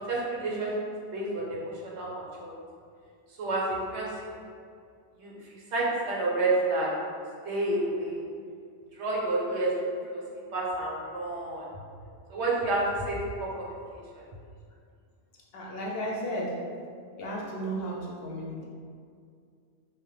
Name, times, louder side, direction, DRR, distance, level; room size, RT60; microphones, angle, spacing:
voice 1, 0.1-0.7 1.1-2.5 3.4-3.6 3.9-4.1 5.2-5.3 5.7-6.9 7.4-8.2 8.9-9.7 10.1-10.2 10.5-11.6 12.3-13.5 13.9-14.2, right 2 dB, 85° right, -4 dB, 1.0 m, -29 dB
voice 2, 15.5-16.5 17.2-18.6, right 1 dB, 70° left, -3 dB, 0.8 m, -34 dB
3.0 x 2.0 x 3.1 m, 2.2 s
omnidirectional pair, 1.1 m